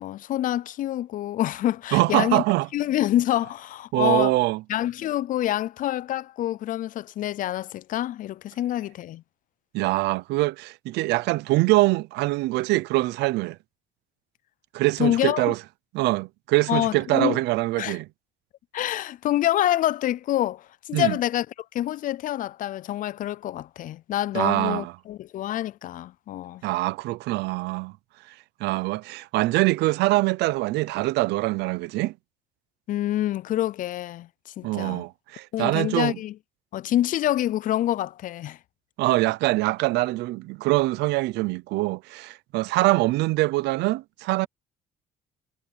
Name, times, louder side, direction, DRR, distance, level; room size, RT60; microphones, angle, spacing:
voice 1, 0.0-2.4 2.7-4.3 4.7-9.2 15.0-15.5 16.7-17.4 17.8-18.0 18.7-21.5 21.7-26.6 32.9-34.3 34.6-35.0 35.5-36.3 36.7-38.6, left 13 dB, 55° left, 0.4 m, -26 dB
voice 2, 1.9-2.7 3.9-4.6 9.7-13.6 14.7-15.6 15.9-18.1 20.9-21.2 24.3-24.9 26.6-28.0 28.3-28.4 28.6-32.1 34.6-36.2 39.0-44.5, right 20 dB, 85° right, 0.7 m, -24 dB
cardioid pair, 110°, 17 cm